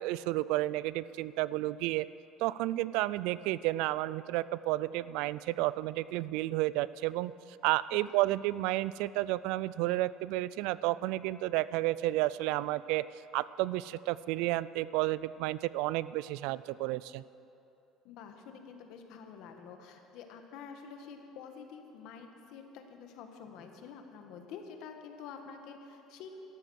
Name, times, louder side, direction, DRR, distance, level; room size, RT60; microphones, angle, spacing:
voice 1, 0.0-2.1 2.4-7.3 7.6-13.1 13.3-17.2, right 17 dB, 75° right, 18 dB, 0.3 m, -31 dB
voice 2, 18.0-26.3, left 6 dB, 65° left, 5 dB, 1.5 m, -48 dB
13.0 x 13.0 x 6.4 m, 2.8 s
cardioid pair, 160°, 0 cm